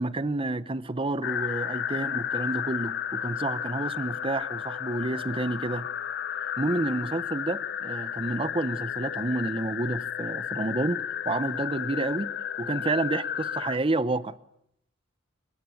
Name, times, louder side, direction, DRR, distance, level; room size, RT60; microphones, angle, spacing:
voice 1, 0.0-5.9 6.6-12.3 12.6-14.4, right 2 dB, 25° right, 0.9 m, -29 dB
sound 1, 1.2-13.8, left 9 dB, 55° left, 0.8 m, -33 dB
27.0 x 15.5 x 9.2 m
head